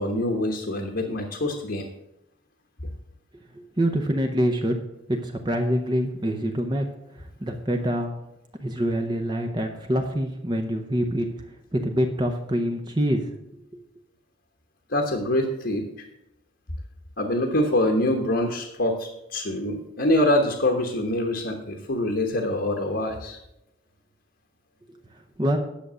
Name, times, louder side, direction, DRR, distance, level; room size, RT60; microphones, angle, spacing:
voice 1, 0.0-1.9 14.9-15.9 17.2-23.4, left 1 dB, 55° left, 2 dB, 1.2 m, -25 dB
voice 2, 3.5-4.8 5.1-6.8 7.4-8.1 8.6-11.3 11.7-13.3 25.4-25.6, equal, 20° right, 4 dB, 0.8 m, -25 dB
10.5 x 6.8 x 6.2 m, 0.88 s
head